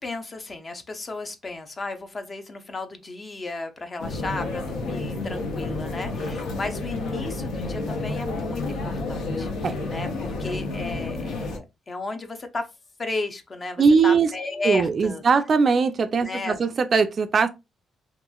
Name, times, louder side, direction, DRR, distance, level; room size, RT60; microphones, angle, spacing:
voice 1, 0.0-12.7 13.0-15.2 16.2-16.6, left 3 dB, 35° left, 0.5 m, -34 dB
sound 1, 4.0-11.6, left 2 dB, 85° left, 0.7 m, -30 dB
voice 2, 13.8-14.3 14.6-17.5, right 5 dB, 45° right, 0.3 m, -20 dB
2.9 x 2.4 x 2.2 m
cardioid pair, 90°, 0 cm